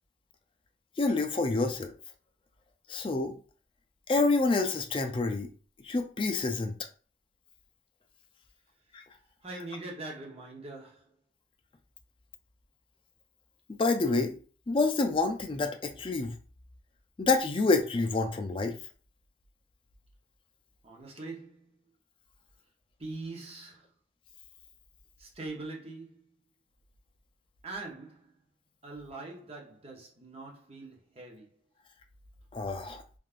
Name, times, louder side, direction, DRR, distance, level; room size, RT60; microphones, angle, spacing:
voice 1, 1.0-1.9 2.9-3.3 4.1-5.5 5.8-6.7 8.9-9.0 13.8-14.4 14.7-16.4 17.2-18.8 32.5-33.0, left 3 dB, 30° left, 0.4 m, -27 dB
voice 2, 9.4-11.0 20.8-21.7 23.0-23.9 25.2-26.3 27.6-28.3 28.8-31.5, right 2 dB, 30° right, 0.7 m, -42 dB
3.5 x 2.4 x 2.4 m
head